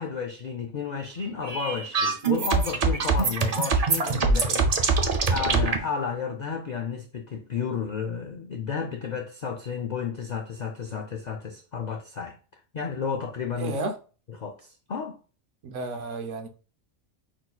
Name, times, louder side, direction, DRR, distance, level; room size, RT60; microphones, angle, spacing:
voice 1, 0.0-12.4 12.7-13.7 14.4-15.2, left 6 dB, 90° left, 0.3 m, -32 dB
sound 1, 1.4-5.8, right 4 dB, 50° right, 0.4 m, -23 dB
voice 2, 13.6-14.0 15.6-16.5, right 2 dB, 70° right, 1.0 m, -32 dB
5.9 x 2.8 x 2.3 m
omnidirectional pair, 1.4 m